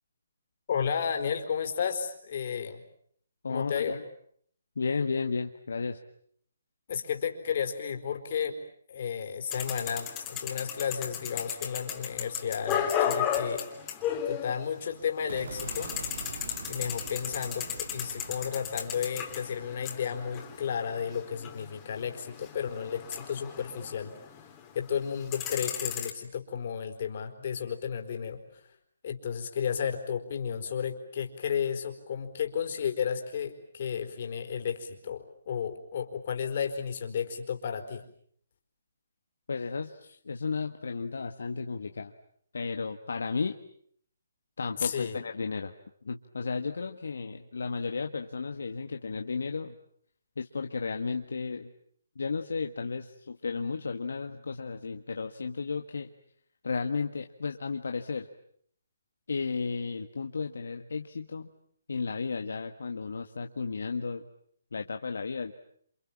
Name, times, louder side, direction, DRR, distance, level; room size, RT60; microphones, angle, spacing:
voice 1, 0.7-2.8 3.5-4.0 6.9-8.6 8.9-13.6 14.2-15.9 16.7-24.1 24.7-28.6 29.0-38.0 44.8-45.2, left 7 dB, 50° left, 5 dB, 4.5 m, -33 dB
voice 2, 3.4-4.0 4.7-6.0 39.5-42.1 42.5-43.6 44.6-45.7 46.0-49.7 50.4-51.7 52.1-56.1 56.6-58.3 59.3-61.5 61.9-64.3 64.7-65.5, left 4 dB, 75° left, 5 dB, 1.6 m, -33 dB
sound 1, 9.5-15.0 15.2-24.6 25.0-26.1, left 9 dB, 20° left, 3.6 m, -35 dB
sound 2, 15.3-21.5, right 4 dB, 65° right, 4.6 m, -45 dB
28.5 x 28.0 x 7.4 m, 0.64 s
hypercardioid pair, 150°, 0 cm